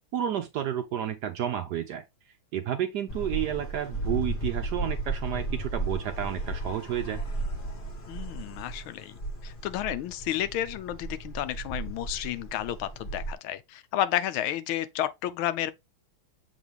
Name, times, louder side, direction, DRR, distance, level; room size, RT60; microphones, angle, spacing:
voice 1, 0.1-2.0 2.5-7.2, right 10 dB, 70° right, 1.0 m, -31 dB
sound 1, 3.1-13.3, right 2 dB, 35° left, 0.9 m, -35 dB
voice 2, 8.1-15.7, left 12 dB, 85° left, 1.4 m, -31 dB
7.2 x 3.8 x 3.4 m
omnidirectional pair, 2.3 m